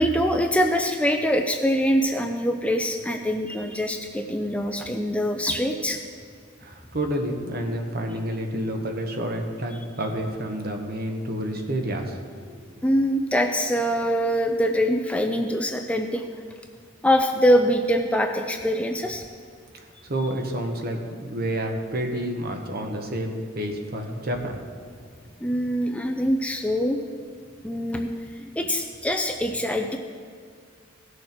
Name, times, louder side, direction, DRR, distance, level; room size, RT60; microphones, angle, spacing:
voice 1, 0.0-6.0 12.8-16.3 17.0-19.3 25.4-27.0 27.6-30.0, equal, 5° left, 4 dB, 0.4 m, -24 dB
voice 2, 6.6-12.2 12.5-12.7 19.7-24.6, right 1 dB, 50° right, 3 dB, 1.2 m, -29 dB
16.5 x 6.5 x 4.5 m, 2.1 s
head